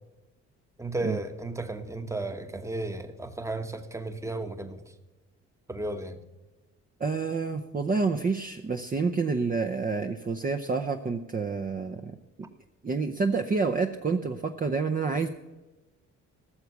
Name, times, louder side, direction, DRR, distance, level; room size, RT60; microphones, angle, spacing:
voice 1, 0.8-4.8 5.7-6.2, right 2 dB, 10° right, 8 dB, 1.1 m, -34 dB
voice 2, 7.0-12.2 12.8-15.3, right 4 dB, 30° right, 5 dB, 0.7 m, -28 dB
14.0 x 7.0 x 6.9 m, 1.1 s
cardioid pair, 90°, 30 cm